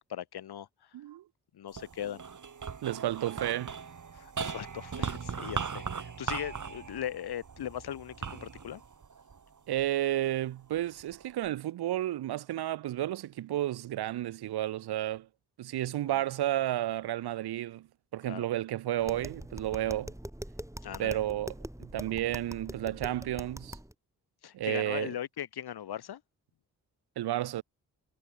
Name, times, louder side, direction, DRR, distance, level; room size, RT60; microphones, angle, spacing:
voice 1, 0.1-1.0 1.5-2.2 4.1-8.8 16.1-16.2 18.2-18.5 20.8-21.2 24.4-26.2, left 10 dB, 80° left, 3.1 m, -39 dB
voice 2, 0.9-1.2 2.8-3.7 9.7-15.3 15.6-17.9 18.1-20.1 21.0-21.5 21.8-23.8 24.5-25.1 27.2-27.6, right 13 dB, 80° right, 1.0 m, -32 dB
sound 1, 1.7-10.2 10.7-11.5, right 6 dB, 50° right, 2.7 m, -39 dB
Tap, 19.0-23.9, right 1 dB, 10° right, 7.7 m, -43 dB
supercardioid pair, 40°, 38 cm